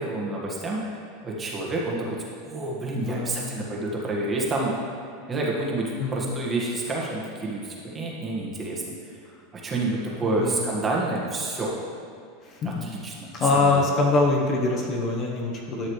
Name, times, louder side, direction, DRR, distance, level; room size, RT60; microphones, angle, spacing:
voice 1, 0.0-2.2 2.4-4.7 5.3-8.8 9.5-11.8 12.6-13.8, right 2 dB, 20° right, -3 dB, 1.6 m, -29 dB
voice 2, 3.0-3.6 6.0-6.3 10.3-10.7 12.4-12.9 13.3-15.9, left 3 dB, 35° left, 0 dB, 1.0 m, -24 dB
11.5 x 6.4 x 3.2 m, 2.4 s
supercardioid pair, 135°, 0 cm